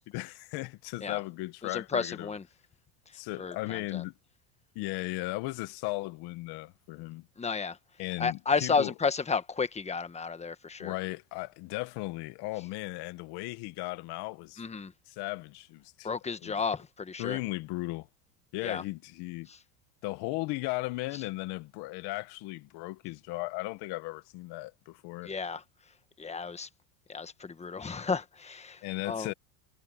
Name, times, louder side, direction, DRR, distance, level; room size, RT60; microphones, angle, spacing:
voice 1, 0.1-2.3 3.1-4.1 4.7-7.3 8.0-8.9 10.8-14.6 15.1-16.1 16.4-16.6 17.2-18.1 18.5-19.5 20.0-25.3 28.8-29.3, left 21 dB, 60° left, 1.7 m, -36 dB
voice 2, 1.7-2.4 3.4-4.0 7.4-7.8 8.2-10.9 14.6-14.9 16.0-17.4 18.6-18.8 19.5-19.6 25.2-25.6 26.2-26.7 27.1-29.3, left 5 dB, 15° left, 1.4 m, -32 dB
supercardioid pair, 120°, 44 cm